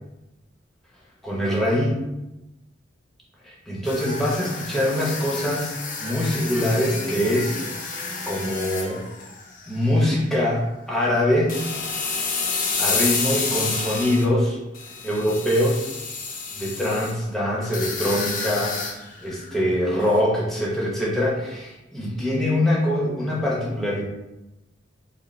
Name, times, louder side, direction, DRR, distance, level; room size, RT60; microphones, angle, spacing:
voice 1, 1.2-2.0 3.4-5.7 6.0-9.0 9.7-11.5 12.8-14.6 15.0-15.9 16.5-18.8 19.2-24.0, left 1 dB, ahead, -5 dB, 0.8 m, -23 dB
sound 1, 3.9-10.0 10.3-10.6 11.5-14.3 14.7-17.1 17.6-19.6 20.0-20.2, left 4 dB, 45° left, 0.6 m, -30 dB
4.8 x 2.0 x 3.2 m, 0.95 s
head